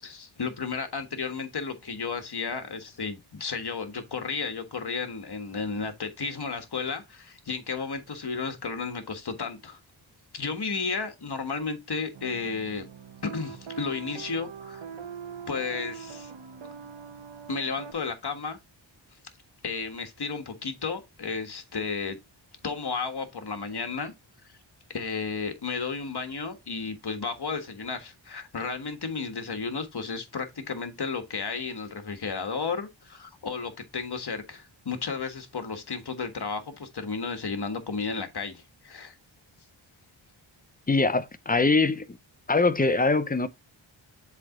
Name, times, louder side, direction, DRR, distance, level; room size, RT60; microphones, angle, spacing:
voice 1, 0.0-9.8 10.3-12.8 13.2-14.8 15.5-16.3 17.5-18.6 19.6-22.2 22.6-24.1 24.9-39.1, left 5 dB, 55° left, 1.5 m, -33 dB
sound 1, 12.1-17.9, right 7 dB, 70° right, 1.0 m, -42 dB
voice 2, 40.9-42.2 42.5-43.5, left 3 dB, 20° left, 0.6 m, -23 dB
7.5 x 3.5 x 3.8 m
wide cardioid pair, 75°, 48 cm